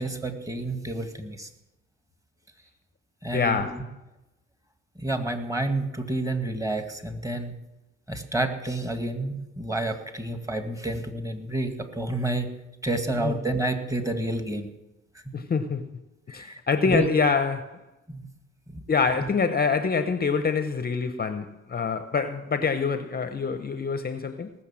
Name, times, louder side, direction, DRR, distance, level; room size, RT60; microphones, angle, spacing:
voice 1, 0.0-1.5 3.2-3.8 5.0-7.5 8.1-12.5 12.8-14.7 16.3-16.6 16.9-17.1 18.1-18.2, right 2 dB, 10° right, 2.0 m, -29 dB
voice 2, 3.3-3.9 13.2-13.4 15.3-15.9 16.3-17.8 18.9-24.5, left 5 dB, 30° left, 0.8 m, -25 dB
19.0 x 6.6 x 7.5 m
cardioid pair, 90°, 30 cm